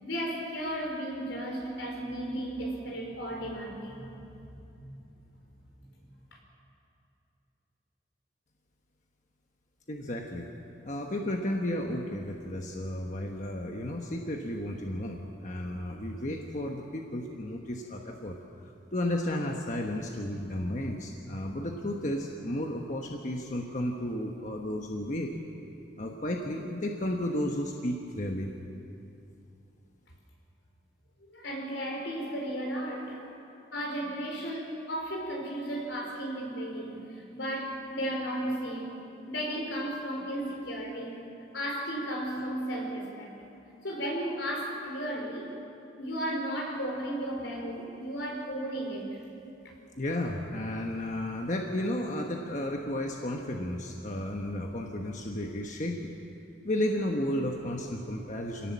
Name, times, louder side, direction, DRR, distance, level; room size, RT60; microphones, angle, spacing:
voice 1, 0.0-4.3 4.8-5.0 6.3-6.4 31.2-33.3 33.7-41.2 41.5-43.3 43.8-45.6 46.0-49.2, right 1 dB, 85° left, 1 dB, 4.8 m, -34 dB
voice 2, 9.9-10.5 10.8-18.4 18.9-25.3 26.0-28.5 50.0-56.1 56.6-58.7, left 1 dB, 40° left, 1 dB, 1.2 m, -33 dB
26.0 x 17.5 x 7.5 m, 2.7 s
head